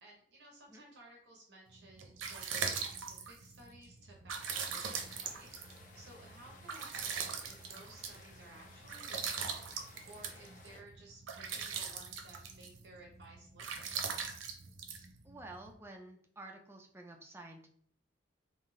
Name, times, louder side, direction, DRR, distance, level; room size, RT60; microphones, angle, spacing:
voice 1, 0.0-5.6 6.0-9.6 10.1-13.9, right 1 dB, 60° right, -1 dB, 0.8 m, -57 dB
sound 1, 1.8-15.7, right 6 dB, 90° right, 0.6 m, -41 dB
sound 2, 4.4-10.8, left 3 dB, 40° left, 0.7 m, -58 dB
voice 2, 15.2-17.7, right 2 dB, 10° right, 2 dB, 0.4 m, -50 dB
3.6 x 2.7 x 3.7 m, 0.62 s
head